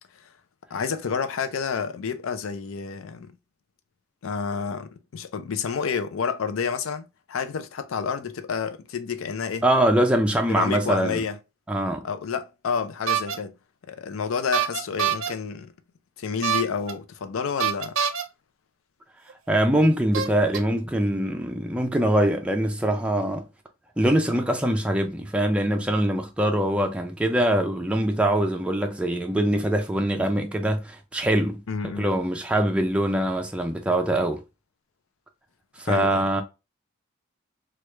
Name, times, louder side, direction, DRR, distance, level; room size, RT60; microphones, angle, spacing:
voice 1, 0.7-3.3 4.2-9.6 10.5-11.4 12.0-13.5 13.9-15.7 16.2-18.0 31.7-32.1 35.9-36.3, left 6 dB, 90° left, 0.4 m, -29 dB
voice 2, 9.6-11.2 11.7-12.1 19.5-23.5 24.0-31.6 32.0-34.4 35.8-36.4, right 1 dB, 5° right, 0.3 m, -23 dB
sound 1, 13.1-13.4 14.5-15.3 16.4-16.9 17.6-18.2 19.3-19.4 20.1-20.6, right 8 dB, 90° right, 0.5 m, -25 dB
3.1 x 2.3 x 3.1 m
head